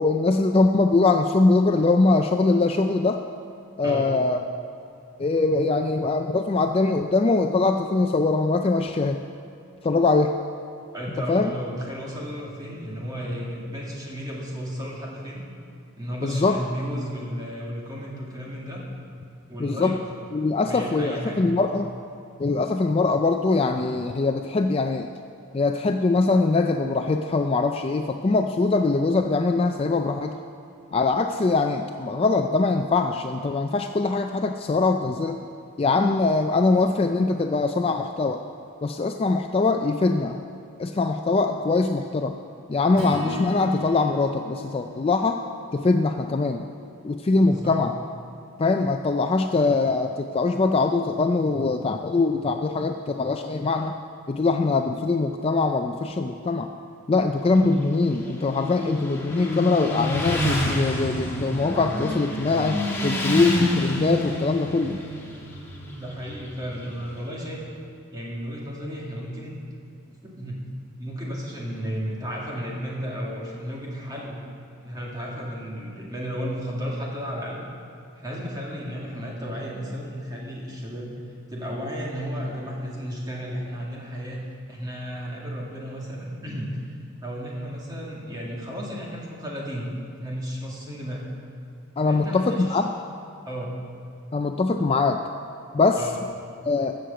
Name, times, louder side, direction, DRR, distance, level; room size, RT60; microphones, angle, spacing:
voice 1, 0.0-3.2 3.8-4.4 5.2-9.2 9.8-10.3 11.3-11.5 16.2-16.6 19.6-20.0 20.3-21.9 22.4-25.1 25.5-30.3 30.9-35.4 35.8-38.4 38.8-40.4 40.8-42.4 42.7-45.4 45.7-46.6 47.0-47.9 48.6-54.0 54.3-56.7 57.1-65.0 92.0-92.9 94.3-95.2 95.7-96.0 96.6-97.0, left 3 dB, 25° left, 5 dB, 0.3 m, -22 dB
voice 2, 3.8-4.1 10.9-15.4 16.0-18.8 19.5-20.0 20.6-21.5 47.4-47.8 65.9-67.6 68.1-69.5 70.0-70.6 71.0-74.4 74.8-77.6 78.2-81.1 81.5-86.9 87.2-89.9 90.2-91.2 92.0-92.8 93.5-93.7 96.0-96.1, equal, 20° right, -4 dB, 2.1 m, -33 dB
Acoustic guitar / Strum, 42.9-47.2, left 1 dB, 75° right, 2.9 m, -37 dB
Motorcycle, 57.4-67.2, left 1 dB, 10° left, 1.4 m, -29 dB
15.5 x 6.4 x 6.8 m, 2.4 s
head